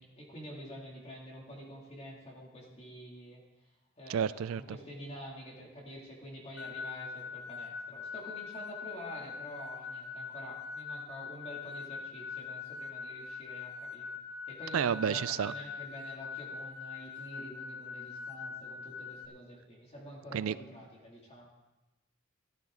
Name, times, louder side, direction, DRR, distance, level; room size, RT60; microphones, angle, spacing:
voice 1, 0.0-3.4 4.0-14.2 14.5-21.4, equal, 30° left, -3 dB, 2.7 m, -47 dB
voice 2, 4.1-4.6 14.7-15.5 20.3-20.5, right 8 dB, 85° right, 18 dB, 0.4 m, -30 dB
sound 1, 6.6-19.3, left 5 dB, 70° left, 1.0 m, -43 dB
14.5 x 12.5 x 3.9 m, 1.0 s
head